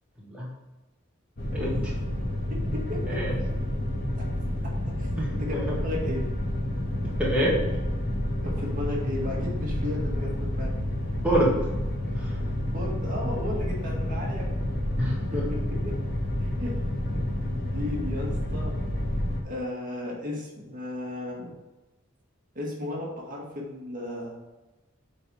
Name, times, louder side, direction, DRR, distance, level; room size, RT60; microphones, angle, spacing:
sound 1, 1.4-19.4, left 1 dB, 50° left, 1.6 m, -29 dB
voice 1, 2.7-3.2 5.0-5.1 5.4-6.2 8.4-10.7 12.7-14.5 15.5-15.9 16.4-16.7 17.1-18.7 19.4-21.5 22.6-24.4, left 1 dB, 40° right, -3 dB, 2.0 m, -35 dB
voice 2, 5.2-5.6 7.2-7.6 11.2-11.6 15.0-15.4, right 1 dB, 5° right, -7 dB, 1.7 m, -26 dB
8.6 x 4.2 x 4.9 m, 1.1 s
head